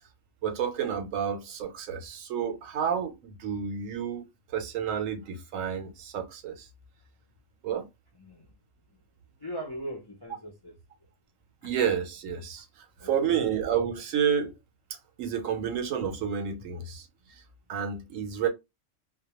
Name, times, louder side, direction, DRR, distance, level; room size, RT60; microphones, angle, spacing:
voice 1, 0.4-3.1 3.4-4.3 4.5-6.5 7.6-7.9 11.6-12.6 13.0-14.5 15.2-17.1 17.7-18.5, right 8 dB, 80° right, 1.0 m, -30 dB
voice 2, 8.2-8.5 9.4-10.8 11.6-11.7 13.0-13.4, right 1 dB, 35° left, 0.3 m, -40 dB
2.2 x 2.2 x 2.9 m
omnidirectional pair, 1.3 m